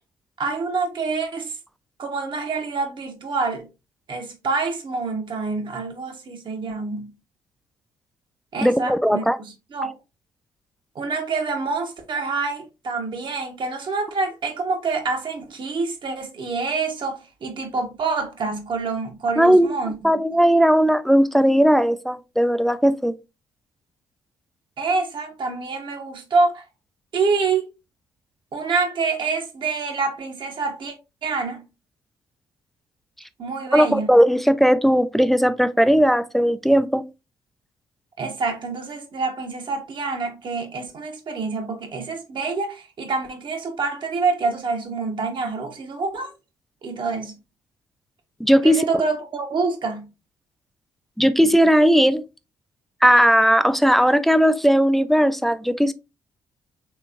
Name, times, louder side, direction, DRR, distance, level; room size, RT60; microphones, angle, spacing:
voice 1, 0.4-1.5 2.0-3.7 4.1-7.1 8.5-9.3 9.7-9.9 10.9-20.1 24.8-26.6 27.1-27.7 28.5-30.9 31.2-31.6 33.4-34.1 38.2-46.3 46.8-47.4 48.6-50.1, right 4 dB, 50° right, 0.9 m, -26 dB
voice 2, 8.6-9.4 19.4-19.7 20.0-23.1 33.7-37.0 48.4-48.9 51.2-52.2 53.0-55.9, equal, ahead, 0.3 m, -17 dB
3.3 x 3.0 x 2.4 m
hypercardioid pair, 45°, 10 cm